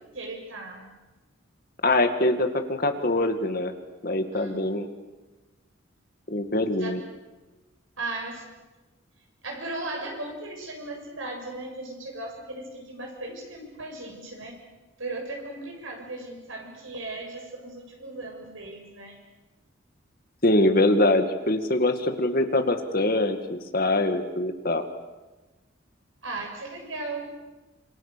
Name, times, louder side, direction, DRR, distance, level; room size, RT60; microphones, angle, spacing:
voice 1, 0.1-1.0 4.3-4.6 6.8-6.9 8.0-8.5 9.4-14.6 15.0-19.2 26.2-27.3, right 2 dB, 80° right, 2 dB, 7.0 m, -37 dB
voice 2, 1.8-3.7 4.0-4.9 6.3-7.0 20.4-24.8, left 2 dB, 45° left, 6 dB, 2.1 m, -23 dB
27.0 x 26.5 x 6.9 m, 1.2 s
head